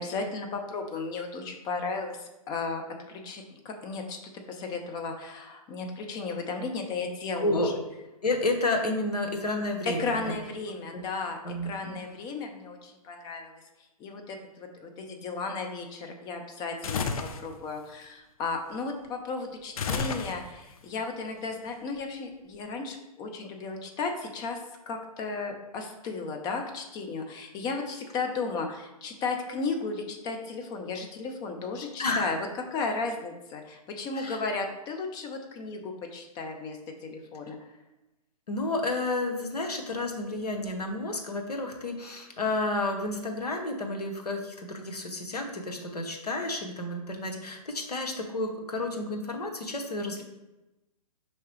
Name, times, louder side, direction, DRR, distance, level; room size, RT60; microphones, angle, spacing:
voice 1, 0.0-7.6 9.8-13.5 14.0-17.1 17.4-32.4 32.7-37.6, left 4 dB, 20° left, 3 dB, 0.6 m, -34 dB
voice 2, 7.4-7.7 8.2-10.3 10.9-11.0 11.4-12.0 32.0-32.3 34.1-34.4 38.5-50.2, left 2 dB, 85° left, 2 dB, 0.9 m, -31 dB
sound 1, 16.8-17.5 19.8-20.7, left 5 dB, 65° left, 0.5 m, -31 dB
5.6 x 2.9 x 3.2 m, 0.98 s
figure-of-eight pair, 125°, 20 cm